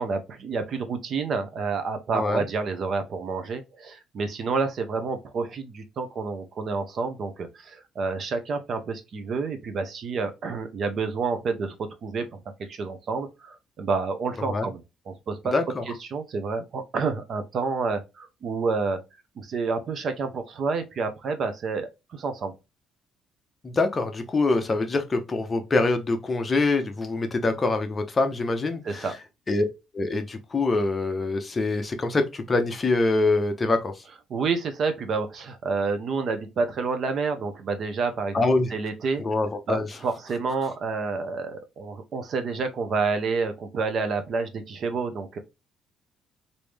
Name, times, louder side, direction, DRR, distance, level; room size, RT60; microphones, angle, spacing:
voice 1, 0.0-12.4 12.7-14.8 15.1-15.5 15.9-19.0 19.4-22.5 28.8-29.1 34.3-38.4 38.7-39.2 39.7-45.4, right 4 dB, 45° right, 0.6 m, -29 dB
voice 2, 2.1-2.4 14.4-14.7 15.5-15.8 23.6-29.1 29.5-29.6 29.9-33.9 38.3-38.7 39.2-39.9, left 3 dB, 25° left, 0.6 m, -24 dB
3.2 x 2.6 x 3.3 m
cardioid pair, 150°, 0 cm